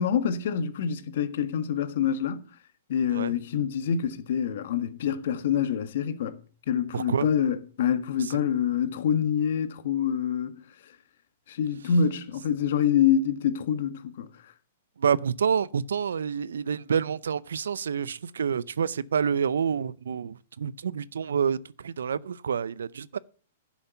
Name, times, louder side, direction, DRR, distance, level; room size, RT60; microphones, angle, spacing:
voice 1, 0.0-2.5 2.9-6.4 6.7-10.6 11.5-14.3, left 8 dB, 65° left, 1.6 m, -26 dB
voice 2, 6.9-7.3 8.2-8.3 15.0-23.2, right 7 dB, 85° right, 0.5 m, -28 dB
11.0 x 7.2 x 6.9 m
hypercardioid pair, 130°, 0 cm